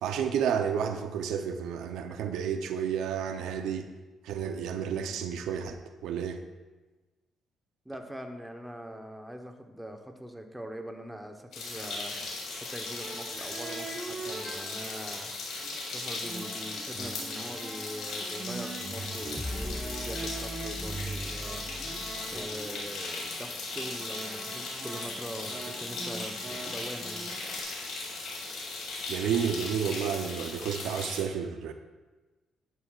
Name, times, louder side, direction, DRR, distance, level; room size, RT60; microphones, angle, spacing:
voice 1, 0.0-3.9 4.2-6.4 29.1-31.7, right 7 dB, 85° right, 7 dB, 0.7 m, -31 dB
voice 2, 7.8-15.3 15.8-21.7 22.3-27.3, equal, 5° right, 4 dB, 1.1 m, -42 dB
sound 1, 11.5-31.2, left 3 dB, 80° left, 3.5 m, -38 dB
sound 2, 13.0-15.3 15.6-27.6, right 3 dB, 30° right, 1.2 m, -43 dB
sound 3, 19.3-22.8, left 1 dB, 10° left, 0.4 m, -40 dB
11.0 x 11.0 x 2.5 m, 1.2 s
cardioid pair, 90°, 0 cm